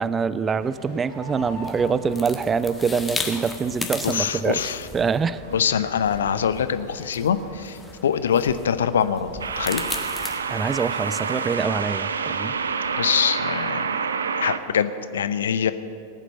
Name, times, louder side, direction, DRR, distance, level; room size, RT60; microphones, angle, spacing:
voice 1, 0.0-5.4 10.5-12.5, right 5 dB, 20° right, 16 dB, 0.4 m, -25 dB
sound 1, 0.6-13.5, equal, 50° right, 3.2 m, -46 dB
sound 2, 1.4-10.4, left 3 dB, 10° left, 1.4 m, -36 dB
voice 2, 4.0-4.8 5.5-9.8 13.0-13.9 14.4-15.7, left 8 dB, 65° left, 13 dB, 0.6 m, -24 dB
sound 3, 5.4-5.8 9.4-14.6, right 5 dB, 70° right, 0.6 m, -27 dB
18.5 x 9.1 x 6.6 m, 2.4 s
figure-of-eight pair, 90°, 0 cm